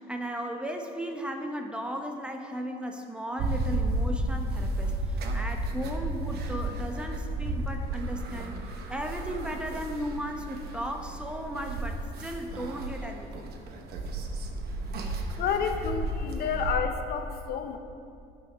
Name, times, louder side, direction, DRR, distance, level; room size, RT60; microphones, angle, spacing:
voice 1, 0.1-8.5 8.9-13.4, equal, 5° right, 3 dB, 0.7 m, -36 dB
sound 1, 3.4-16.7, right 2 dB, 70° right, 1.0 m, -33 dB
voice 2, 15.4-17.8, left 7 dB, 65° left, 6 dB, 0.7 m, -30 dB
12.0 x 4.4 x 5.5 m, 2.5 s
cardioid pair, 110°, 17 cm